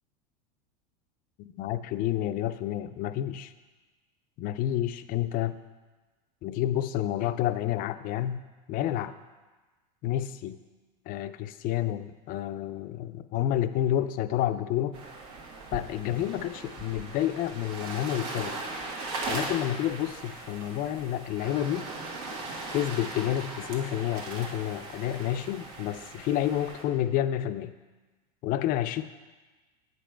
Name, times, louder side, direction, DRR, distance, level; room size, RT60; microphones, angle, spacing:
voice 1, 1.4-3.5 4.4-5.6 6.4-8.4 8.7-9.2 10.0-10.6 11.1-15.0 15.7-18.6 19.3-21.9 22.7-27.7 28.4-29.0, left 12 dB, 45° left, 12 dB, 0.4 m, -29 dB
sound 1, 14.9-26.8, right 3 dB, 65° right, 1.5 m, -39 dB
8.2 x 5.2 x 4.4 m, 1.2 s
hypercardioid pair, 105°, 21 cm